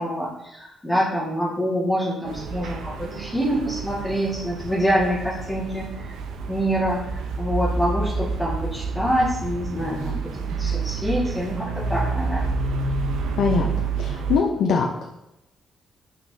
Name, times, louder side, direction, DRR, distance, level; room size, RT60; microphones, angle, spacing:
voice 1, 0.0-6.2 6.5-12.6, equal, 10° left, -9 dB, 1.9 m, -26 dB
sound 1, 2.2-14.4, right 4 dB, 85° right, 0.6 m, -29 dB
voice 2, 13.4-13.7 14.0-15.0, left 5 dB, 75° left, 0 dB, 0.7 m, -22 dB
6.0 x 5.7 x 2.8 m, 0.90 s
cardioid pair, 90°, 0 cm